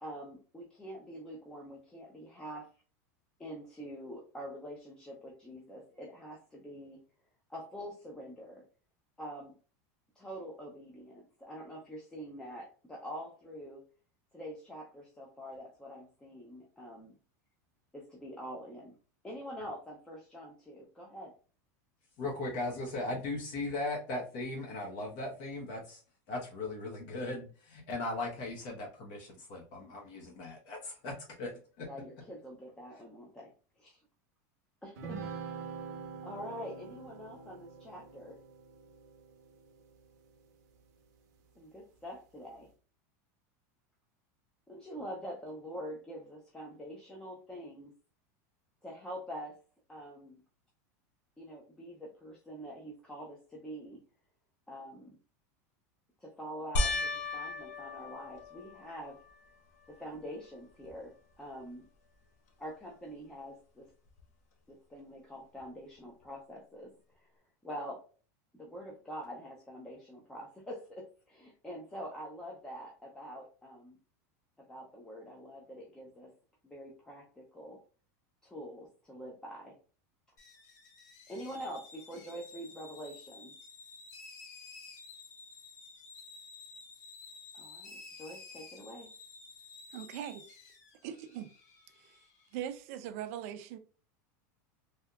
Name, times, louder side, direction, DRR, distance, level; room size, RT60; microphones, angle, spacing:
voice 1, 0.0-2.7 3.4-7.0 7.5-8.6 9.2-9.5 10.2-13.8 14.3-17.1 17.9-18.9 19.2-21.3 31.8-33.5 33.8-34.0 34.8-35.7 36.2-38.4 41.6-42.7 44.7-47.9 48.8-49.5 49.9-50.4 51.4-54.0 54.7-55.2 56.2-59.2 60.0-61.8 62.6-63.9 64.7-67.3 67.6-68.0 68.5-74.0 74.7-76.3 76.6-77.8 78.4-79.8 81.3-83.5 87.5-89.1, equal, 10° left, 0.6 m, -45 dB
voice 2, 22.2-26.0 26.3-31.9, left 2 dB, 50° left, 1.0 m, -38 dB
sound 1, 35.0-40.6, right 5 dB, 85° right, 0.8 m, -45 dB
sound 2, 56.8-59.4 60.0-60.5 60.9-61.0 64.2-64.3, left 2 dB, 70° left, 0.7 m, -35 dB
sound 3, 80.4-92.6, left 4 dB, 90° left, 1.0 m, -52 dB
voice 3, 89.9-90.4 91.0-91.5 92.0-92.1 92.5-93.8, right 10 dB, 55° right, 0.4 m, -40 dB
3.4 x 2.7 x 2.3 m
supercardioid pair, 160°, 9 cm